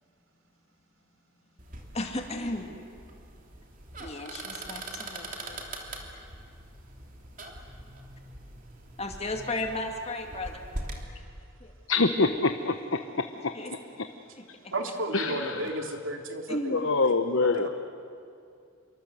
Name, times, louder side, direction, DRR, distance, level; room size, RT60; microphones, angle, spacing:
sound 1, 1.6-11.0, right 2 dB, 40° right, 3.1 m, -42 dB
voice 1, 1.9-2.7 4.0-5.6 9.0-10.6 11.6-11.7 13.5-13.7 14.4-14.7 16.5-16.9, left 2 dB, 30° left, 3 dB, 2.2 m, -34 dB
voice 2, 11.9-13.0 15.1-15.6 16.7-17.7, left 3 dB, 70° left, 7 dB, 1.0 m, -25 dB
voice 3, 14.7-17.1 17.4-17.7, right 1 dB, 70° right, 3 dB, 2.8 m, -34 dB
28.0 x 24.0 x 7.9 m, 2.4 s
head